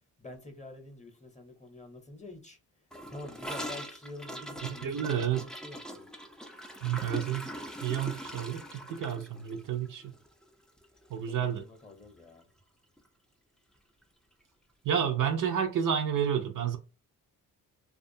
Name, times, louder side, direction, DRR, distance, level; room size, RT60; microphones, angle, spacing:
voice 1, 0.2-6.1 11.2-12.5, left 2 dB, 20° left, 0.7 m, -47 dB
Gurgling / Toilet flush, 2.9-11.2 11.4-11.6 11.9-12.3 12.6-12.7 13.0-13.1 14.0-14.1, equal, ahead, 0.3 m, -42 dB
voice 2, 4.6-5.4 6.8-7.5 7.8-10.1 11.1-11.6 14.8-16.8, right 8 dB, 55° right, 0.5 m, -30 dB
2.4 x 2.3 x 2.6 m
supercardioid pair, 65°, 39 cm